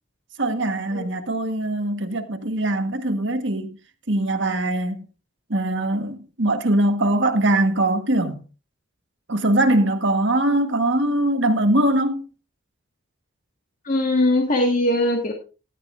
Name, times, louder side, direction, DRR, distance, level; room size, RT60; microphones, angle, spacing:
voice 1, 0.4-3.8 4.1-5.0 5.5-8.4 9.3-12.3, right 1 dB, 65° right, 1.5 m, -22 dB
voice 2, 13.8-15.3, left 1 dB, 45° left, 1.7 m, -20 dB
13.0 x 11.5 x 2.6 m
head